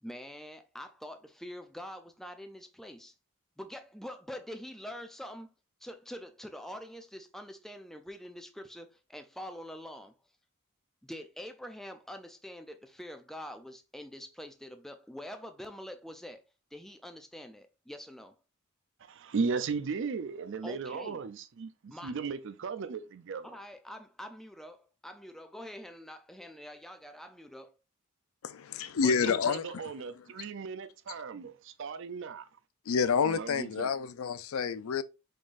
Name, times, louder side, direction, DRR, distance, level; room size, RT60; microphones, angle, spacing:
voice 1, 0.0-3.1 3.6-5.5 5.8-10.1 11.0-16.4 16.7-18.3 20.6-21.2 21.9-22.1 23.4-27.7, equal, ahead, 0.4 m, -45 dB
voice 2, 19.0-23.6 29.0-32.5 33.2-33.9, right 5 dB, 60° right, 0.5 m, -36 dB
voice 3, 28.4-29.8 32.9-35.0, left 6 dB, 75° left, 0.4 m, -29 dB
5.2 x 3.7 x 2.5 m
head